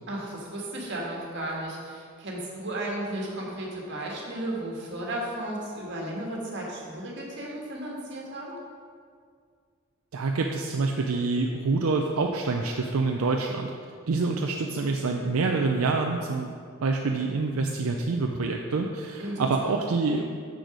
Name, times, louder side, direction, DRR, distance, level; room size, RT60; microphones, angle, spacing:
voice 1, 0.1-8.6 19.2-19.8, right 1 dB, 55° right, -3 dB, 1.7 m, -34 dB
voice 2, 10.1-13.7 14.1-16.5 16.8-20.2, right 3 dB, 85° right, 2 dB, 0.5 m, -26 dB
6.4 x 6.4 x 4.9 m, 2.1 s
head